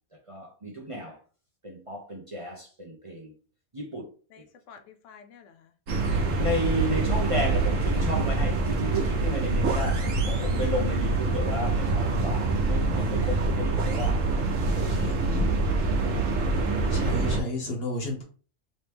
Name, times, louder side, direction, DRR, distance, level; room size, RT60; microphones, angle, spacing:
voice 1, 0.3-1.2 1.6-3.3 3.7-4.0 6.4-14.2 14.7-15.0, equal, 30° right, 0.7 m, -33 dB
voice 2, 4.3-5.7, left 6 dB, 80° left, 0.9 m, -54 dB
sound 1, 5.9-17.4, right 3 dB, 85° right, 1.2 m, -25 dB
voice 3, 14.8-15.9 16.9-18.2, left 2 dB, 55° left, 1.3 m, -33 dB
3.1 x 2.9 x 3.4 m
omnidirectional pair, 1.3 m